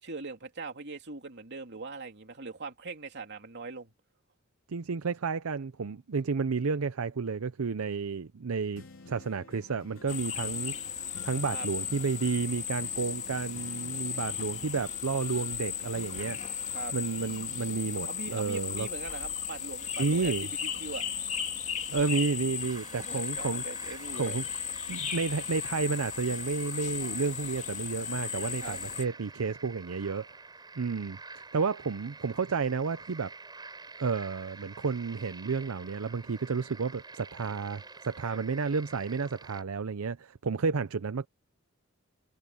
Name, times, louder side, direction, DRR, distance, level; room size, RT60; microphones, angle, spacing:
voice 1, 0.0-3.9 11.5-11.7 16.7-16.9 18.0-21.0 22.9-24.4 24.9-25.0 28.6-28.8 38.2-38.4, right 3 dB, 55° right, 3.0 m, -41 dB
voice 2, 4.7-10.8 11.2-16.4 16.9-18.9 20.0-20.5 21.9-23.6 24.2-24.4 24.9-30.3 30.8-33.3 34.0-41.3, right 5 dB, 80° right, 0.6 m, -31 dB
sound 1, 8.7-20.4 20.7-22.6 23.1-23.2, left 3 dB, 70° left, 3.1 m, -53 dB
sound 2, 10.1-29.1, left 8 dB, 35° left, 2.3 m, -36 dB
sound 3, 22.6-39.6, right 3 dB, 20° right, 7.4 m, -48 dB
head